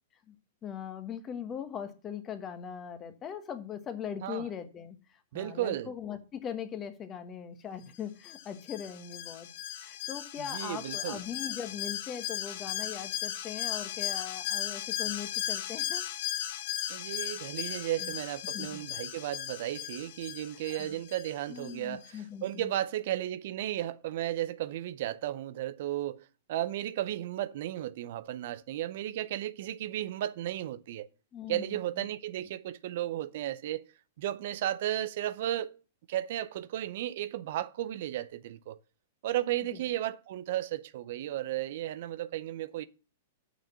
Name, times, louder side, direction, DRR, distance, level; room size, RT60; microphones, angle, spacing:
voice 1, 0.6-9.5 9.7-16.0 18.0-18.1 18.5-18.8 20.7-21.0 21.5-22.7 31.3-32.1 39.7-39.8, left 8 dB, 25° left, 1.4 m, -40 dB
voice 2, 5.3-5.9 10.4-11.2 16.9-31.1 31.5-33.8 34.2-35.8 36.1-38.8 39.2-42.8, right 13 dB, 60° right, 0.6 m, -34 dB
Alarm, 8.2-21.7 22.0-22.1, left 12 dB, 55° left, 1.1 m, -37 dB
6.6 x 6.2 x 7.0 m
hypercardioid pair, 110°, 0 cm